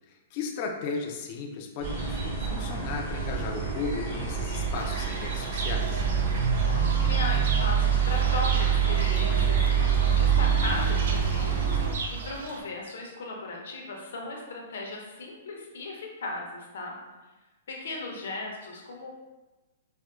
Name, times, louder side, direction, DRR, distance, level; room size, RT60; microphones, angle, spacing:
voice 1, 0.3-6.1, left 4 dB, 35° left, 2 dB, 0.4 m, -35 dB
sound 1, 1.8-11.9, right 7 dB, 45° right, 1.2 m, -26 dB
Fowl / Bird, 4.8-12.6, right 4 dB, 65° right, 0.4 m, -35 dB
voice 2, 6.6-9.6 10.1-17.0 17.7-19.1, left 2 dB, 75° left, 0 dB, 0.7 m, -37 dB
4.3 x 2.1 x 2.3 m, 1.1 s
hypercardioid pair, 165°, 0 cm